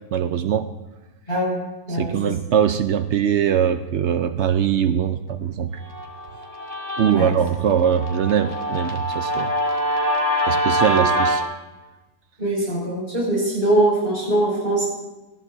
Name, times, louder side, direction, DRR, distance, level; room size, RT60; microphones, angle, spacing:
voice 1, 0.1-0.7 1.9-5.7 7.0-9.5 10.5-11.4, right 8 dB, 70° right, 9 dB, 0.6 m, -21 dB
voice 2, 1.3-1.6 1.9-2.2 7.0-7.3 10.9-11.0 12.4-14.8, right 1 dB, 35° left, -6 dB, 5.4 m, -22 dB
Guitar, 5.9-11.4, equal, 15° right, 1.8 m, -24 dB
20.0 x 14.5 x 2.7 m, 1.1 s
omnidirectional pair, 1.8 m